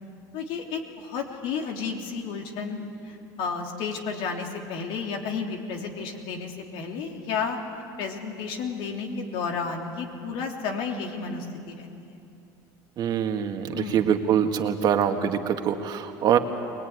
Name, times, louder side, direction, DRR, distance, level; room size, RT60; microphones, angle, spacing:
voice 1, 0.3-7.6 8.0-12.2 13.7-14.1, left 5 dB, 70° left, 2 dB, 3.2 m, -32 dB
voice 2, 13.0-16.4, right 8 dB, 45° right, 5 dB, 1.8 m, -24 dB
22.5 x 20.0 x 9.6 m, 2.7 s
supercardioid pair, 115°, 9 cm